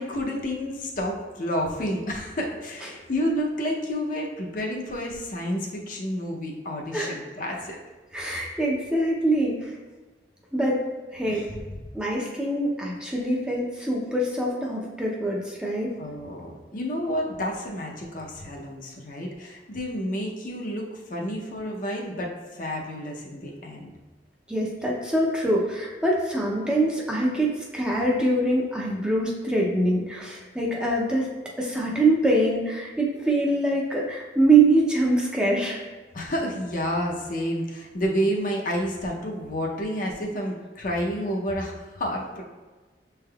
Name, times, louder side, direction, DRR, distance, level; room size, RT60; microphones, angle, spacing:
voice 1, 0.0-7.8 11.3-11.8 16.0-23.9 36.1-42.4, equal, 50° left, -1 dB, 0.6 m, -30 dB
voice 2, 8.1-9.7 10.5-10.8 11.1-11.4 11.9-15.9 24.5-31.3 31.6-35.8, right 2 dB, 5° right, -3 dB, 0.5 m, -24 dB
6.4 x 3.4 x 2.3 m, 1.3 s
head